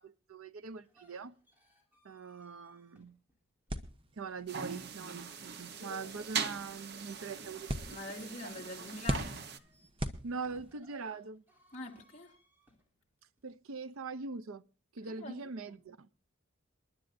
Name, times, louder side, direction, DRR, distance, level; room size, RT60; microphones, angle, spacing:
voice 1, 0.0-1.3 2.0-3.2 4.2-7.8 10.2-11.4 13.4-14.6 14.9-16.1, right 4 dB, 85° right, 0.6 m, -42 dB
sound 1, 0.6-3.9 5.7-8.8 9.3-13.5, right 1 dB, 10° right, 3.2 m, -67 dB
sound 2, 3.7-10.8, right 1 dB, 25° right, 1.0 m, -42 dB
sound 3, 4.5-9.6, right 5 dB, 50° right, 1.0 m, -41 dB
voice 2, 7.9-9.4 11.7-12.4 15.0-15.8, left 1 dB, 35° left, 2.6 m, -45 dB
27.5 x 11.0 x 2.6 m
head